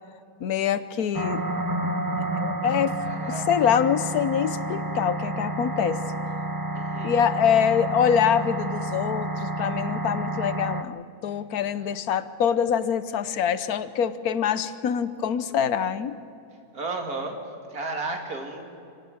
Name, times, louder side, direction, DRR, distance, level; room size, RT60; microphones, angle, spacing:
voice 1, 0.4-1.4 2.3-2.9 3.3-6.0 7.0-16.2, left 8 dB, 80° left, 13 dB, 1.3 m, -25 dB
sound 1, 1.1-10.8, right 2 dB, 30° right, 0.3 m, -30 dB
voice 2, 3.0-3.5 6.7-7.1 11.7-11.9 16.7-17.4 17.7-18.8, right 3 dB, 80° right, 3 dB, 2.9 m, -33 dB
26.0 x 17.0 x 7.8 m, 2.6 s
omnidirectional pair, 1.6 m